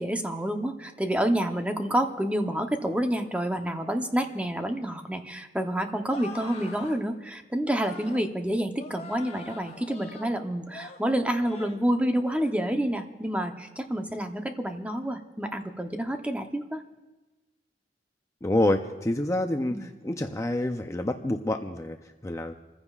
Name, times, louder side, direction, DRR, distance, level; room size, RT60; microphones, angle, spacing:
voice 1, 0.0-16.8 19.7-19.9, right 1 dB, 10° right, 5 dB, 0.8 m, -28 dB
sound 1, 6.1-7.0 7.7-8.3 8.7-10.3 10.7-11.0 11.4-11.8 12.2-12.5, left 3 dB, 40° left, 1.8 m, -43 dB
voice 2, 18.4-22.5, left 1 dB, 15° left, 4 dB, 0.5 m, -28 dB
28.5 x 15.0 x 2.4 m, 1.2 s
head